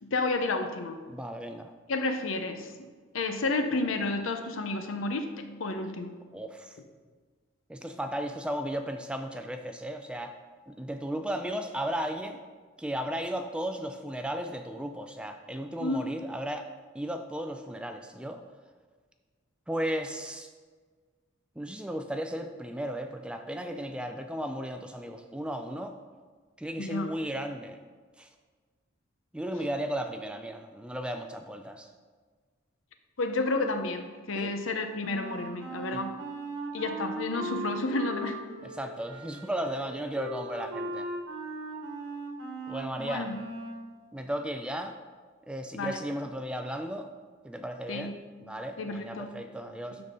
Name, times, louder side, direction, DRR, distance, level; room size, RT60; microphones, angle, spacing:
voice 1, 0.0-1.0 1.9-2.7 3.1-5.3 5.6-6.1 15.8-16.1 26.8-27.1 33.2-36.1 36.7-38.4 43.0-43.4 45.7-46.0 47.9-48.1 48.8-49.3, left 3 dB, 80° left, 7 dB, 0.7 m, -31 dB
voice 2, 1.1-1.7 6.3-6.8 7.7-10.4 10.7-12.4 12.8-16.7 16.9-18.4 19.7-20.5 21.6-26.0 26.6-27.8 28.2-28.3 29.3-31.9 34.4-34.5 35.9-36.0 38.6-41.1 42.7-43.3 44.1-45.0 45.5-47.1 47.4-48.1 48.4-50.0, right 1 dB, 5° right, 6 dB, 0.3 m, -35 dB
Wind instrument woodwind instrument, 35.0-43.9, right 1 dB, 85° right, 1.4 m, -38 dB
12.0 x 4.0 x 3.6 m, 1.5 s
head